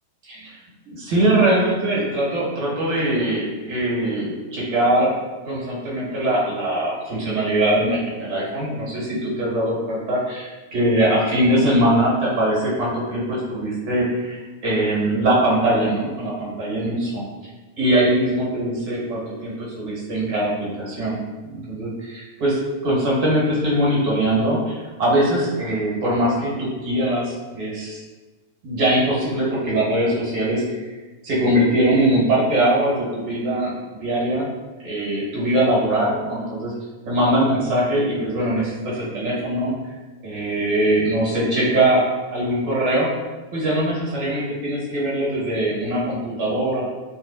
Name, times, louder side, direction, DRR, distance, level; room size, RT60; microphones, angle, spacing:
voice 1, 0.2-0.6 0.8-5.1 5.4-17.2 17.8-21.2 21.5-28.0 28.6-30.8 31.2-34.5 34.8-36.7 37.0-39.7 40.2-43.1 43.5-46.8, right 1 dB, 45° right, -6 dB, 1.2 m, -21 dB
2.8 x 2.1 x 2.7 m, 1.2 s
figure-of-eight pair, 90°, 0 cm